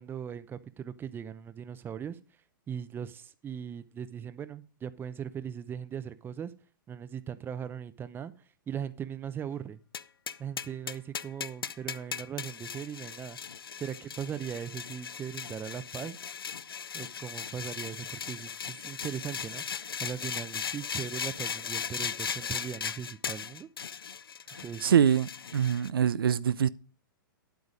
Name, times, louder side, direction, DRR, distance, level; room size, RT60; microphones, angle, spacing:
voice 1, 0.0-2.2 2.7-6.5 6.9-8.3 8.7-9.8 10.4-13.4 13.8-16.2 16.9-19.6 20.0-23.7 24.6-24.9, right 8 dB, 20° right, 0.8 m, -39 dB
sound 1, 9.9-25.9, left 7 dB, 90° left, 0.5 m, -38 dB
voice 2, 24.8-26.7, right 8 dB, 80° right, 0.5 m, -24 dB
9.7 x 8.2 x 5.1 m
hypercardioid pair, 120°, 12 cm